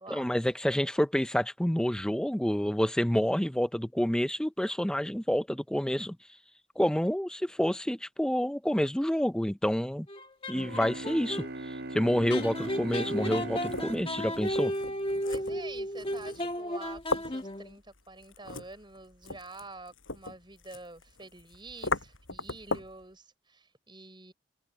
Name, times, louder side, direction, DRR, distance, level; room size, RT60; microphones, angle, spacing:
voice 1, 0.1-6.2 6.8-10.1 10.5-14.7, equal, 5° left, 0.5 m, -28 dB
sound 1, 10.1-11.5 12.3-17.8, equal, 25° left, 1.7 m, -34 dB
Bowed string instrument, 10.5-15.5, right 2 dB, 50° right, 0.8 m, -40 dB
sound 2, 12.8-23.0, left 3 dB, 90° left, 6.3 m, -39 dB
voice 2, 15.2-24.3, right 3 dB, 25° right, 6.4 m, -48 dB
open air
head